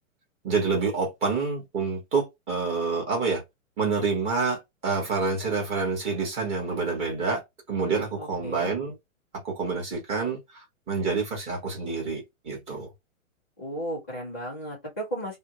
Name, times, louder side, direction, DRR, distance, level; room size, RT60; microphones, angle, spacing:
voice 1, 0.4-3.4 3.8-7.4 7.7-8.9 9.4-12.9, right 4 dB, 15° right, 1.1 m, -28 dB
voice 2, 8.2-8.7 13.6-15.4, right 1 dB, 10° left, 0.3 m, -34 dB
3.3 x 2.1 x 2.9 m
hypercardioid pair, 160°, 41 cm